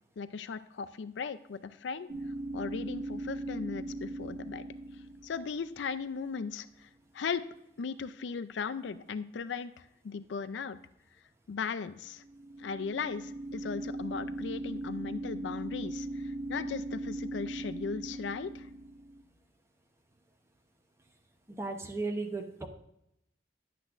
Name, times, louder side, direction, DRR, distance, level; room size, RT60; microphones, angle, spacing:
voice 1, 0.2-2.1 2.5-4.6 5.2-6.9 7.1-7.4 7.8-10.8 11.5-12.2 12.6-16.1 16.5-18.7, left 5 dB, 80° left, 11 dB, 0.4 m, -37 dB
sound 1, 2.1-6.2 12.2-19.2, right 1 dB, 50° right, 1.7 m, -39 dB
voice 2, 21.5-22.7, right 3 dB, 15° right, 4 dB, 0.8 m, -35 dB
11.0 x 8.2 x 2.4 m, 0.79 s
head